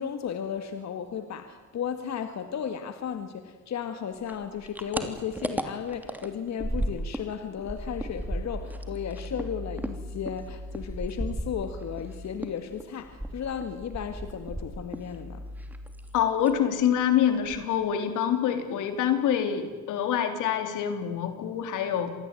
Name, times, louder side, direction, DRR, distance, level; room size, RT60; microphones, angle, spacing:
voice 1, 0.0-15.4, left 8 dB, 60° left, 9 dB, 2.0 m, -35 dB
sound 1, 4.2-7.3 7.6-12.1 12.4-15.1 15.4-16.1 16.4-16.7 17.0-17.1 17.4-17.9, right 1 dB, 5° right, 3.0 m, -35 dB
sound 2, 7.6-16.2, left 1 dB, 20° left, 5.2 m, -42 dB
voice 2, 16.1-22.1, left 9 dB, 90° left, 8 dB, 3.5 m, -26 dB
27.0 x 19.5 x 9.2 m, 1.4 s
cardioid pair, 90°, 30 cm